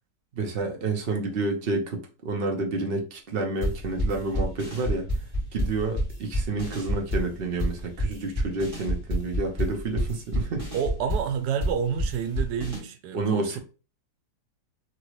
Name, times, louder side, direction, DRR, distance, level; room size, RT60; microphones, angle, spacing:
voice 1, 0.3-5.1 5.5-10.7 13.1-13.6, right 3 dB, 55° right, 0.7 m, -29 dB
sound 1, 3.6-12.8, equal, 20° right, 1.1 m, -28 dB
voice 2, 10.7-13.6, right 7 dB, 90° right, 1.2 m, -29 dB
2.9 x 2.8 x 3.0 m
omnidirectional pair, 1.7 m